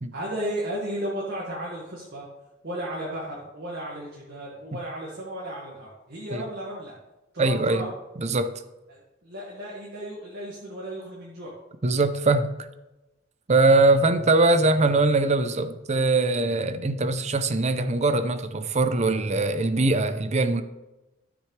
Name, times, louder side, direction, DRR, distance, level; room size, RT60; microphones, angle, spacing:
voice 1, 0.1-2.3 2.6-6.9 7.3-7.9 8.9-11.6, right 1 dB, 60° right, 1.8 m, -34 dB
voice 2, 7.4-7.9 8.2-8.5 11.8-12.5 13.5-20.6, right 2 dB, 35° right, 0.6 m, -22 dB
13.5 x 6.1 x 3.3 m
head